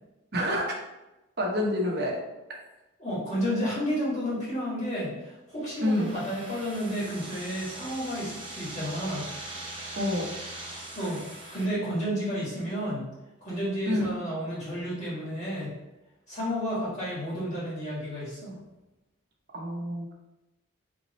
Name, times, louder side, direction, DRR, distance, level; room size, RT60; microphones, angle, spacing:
voice 1, 0.3-0.7 1.4-2.2 5.8-6.2 9.9-10.4 13.9-14.0 19.5-20.1, left 1 dB, 50° right, -1 dB, 0.8 m, -28 dB
voice 2, 3.0-9.3 10.9-11.2 11.5-13.0 13.4-15.7 16.3-18.6, equal, 35° left, -8 dB, 1.5 m, -31 dB
sound 1, 5.5-11.7, right 2 dB, 25° right, 0.6 m, -41 dB
3.5 x 3.2 x 4.0 m, 1.0 s
head